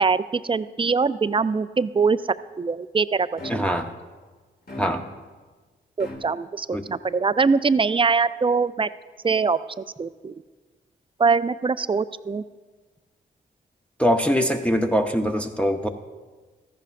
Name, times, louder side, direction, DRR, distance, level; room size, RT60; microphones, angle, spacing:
voice 1, 0.0-2.2 2.6-3.7 6.0-8.9 9.2-10.3 11.2-12.4, right 4 dB, 25° right, 15 dB, 0.4 m, -23 dB
sound 1, 3.4-3.9 4.7-5.3 6.0-6.2, left 1 dB, 50° left, 2.2 m, -37 dB
voice 2, 3.5-3.9 4.8-5.0 6.7-6.9 14.0-15.9, equal, 5° left, 3 dB, 0.7 m, -22 dB
14.0 x 10.5 x 2.5 m, 1.4 s
supercardioid pair, 40°, 21 cm